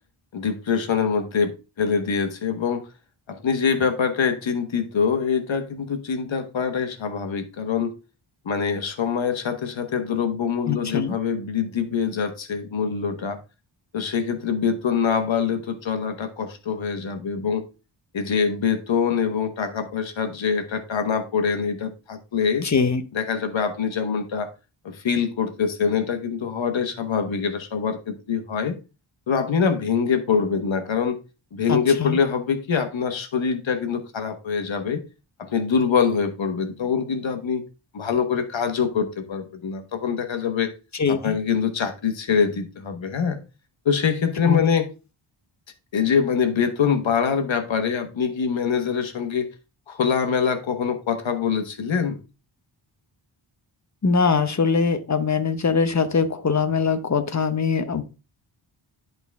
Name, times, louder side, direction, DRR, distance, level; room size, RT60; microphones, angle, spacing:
voice 1, 0.3-2.8 3.3-7.9 8.4-13.4 13.9-17.6 18.1-22.7 23.1-24.5 24.8-28.7 29.3-31.2 31.5-35.0 35.4-37.6 37.9-40.7 41.1-43.4 43.8-44.9 45.9-49.5 49.9-52.2, left 6 dB, 65° left, 1.3 m, -24 dB
voice 2, 10.7-11.2 22.6-23.0 31.7-32.2 40.9-41.4 44.4-44.7 54.0-58.0, left 5 dB, 35° left, 0.8 m, -22 dB
10.5 x 4.0 x 3.5 m
wide cardioid pair, 115°, 49 cm